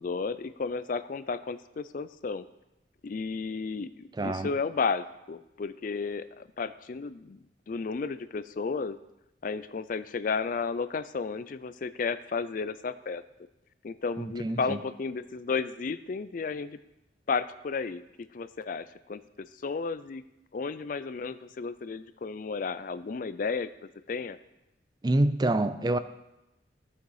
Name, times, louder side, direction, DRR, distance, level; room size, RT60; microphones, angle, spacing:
voice 1, 0.0-2.4 3.0-9.0 9.4-13.2 13.8-16.8 17.3-19.2 19.6-20.2 20.5-23.7 24.1-24.4, left 4 dB, 45° left, 0.4 m, -33 dB
voice 2, 4.2-4.5 14.2-14.8 25.0-26.0, right 1 dB, 20° right, 0.4 m, -27 dB
14.5 x 6.6 x 4.8 m
head